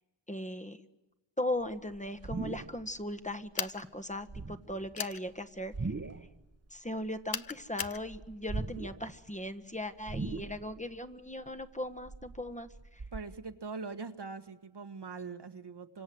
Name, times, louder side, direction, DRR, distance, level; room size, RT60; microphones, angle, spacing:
voice 1, 0.3-0.8 1.4-5.9 6.7-13.0, left 1 dB, 15° left, 10 dB, 1.5 m, -38 dB
sound 1, 1.6-3.0 3.3-3.7 4.2-4.9 5.6-6.4 6.7-7.6 7.9-9.2 9.5-9.6 10.0-10.9 11.3-13.2, right 3 dB, 30° right, 1.4 m, -40 dB
sound 2, 3.6-3.8 5.0-5.2 7.3-8.0, left 6 dB, 45° left, 1.0 m, -36 dB
voice 2, 13.1-16.0, right 4 dB, 55° right, 8 dB, 1.8 m, -42 dB
29.0 x 26.0 x 7.9 m, 1.0 s
cardioid pair, 55°, 47 cm